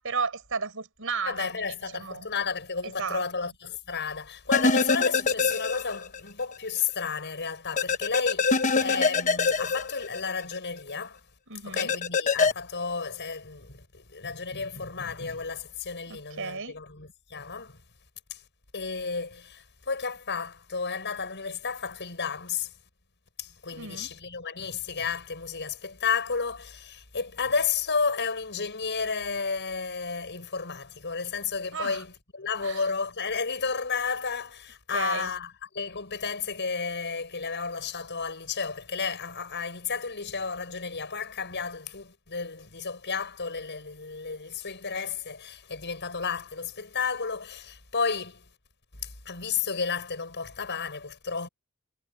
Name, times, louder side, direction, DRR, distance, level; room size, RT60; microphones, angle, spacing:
voice 1, 0.0-1.5 1.9-2.3 3.0-3.2 11.5-11.9 16.1-16.8 23.7-24.1 31.7-32.0 32.6-32.8 34.9-35.3, right 5 dB, 65° right, 6.4 m, -33 dB
voice 2, 1.3-11.2 11.6-17.8 18.3-18.4 18.7-22.7 23.4-48.5 48.9-51.5, left 5 dB, 55° left, 6.8 m, -32 dB
sound 1, 4.5-6.2 6.5-6.6 7.8-10.6 11.8-12.5, left 4 dB, 35° left, 1.2 m, -24 dB
head